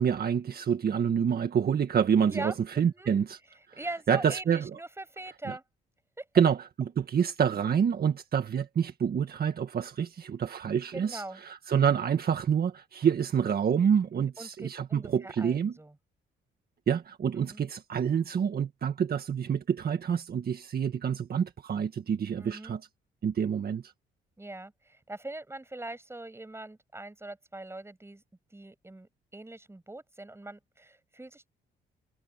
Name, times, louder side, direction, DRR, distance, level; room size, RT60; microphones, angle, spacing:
voice 1, 0.0-3.4 3.7-3.8 4.1-4.7 5.5-5.6 6.3-15.8 16.9-22.9 23.2-23.9, right 7 dB, 50° right, 1.8 m, -27 dB
voice 2, 2.3-3.1 3.8-5.6 6.2-6.3 10.9-11.4 14.1-15.9 17.4-17.6 22.4-22.8 24.4-28.2 28.5-31.5, right 2 dB, 10° right, 7.3 m, -42 dB
cardioid pair, 90°, 20 cm